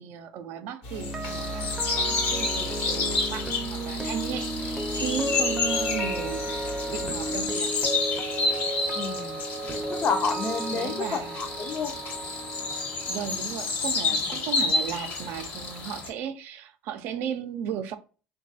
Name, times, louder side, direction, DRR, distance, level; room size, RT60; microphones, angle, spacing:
voice 1, 0.0-7.7 10.7-11.8 13.1-18.0, right 8 dB, 65° right, 0.4 m, -35 dB
sound 1, 0.8-7.5, left 2 dB, 85° left, 1.0 m, -36 dB
sound 2, 0.9-15.0 15.2-15.5, right 2 dB, 15° right, 0.5 m, -34 dB
sound 3, 1.2-16.1, left 3 dB, 60° left, 1.0 m, -30 dB
voice 2, 8.9-9.4 9.9-11.9 14.2-14.3, left 5 dB, 40° left, 0.5 m, -30 dB
3.1 x 2.3 x 2.6 m
supercardioid pair, 95°, 4 cm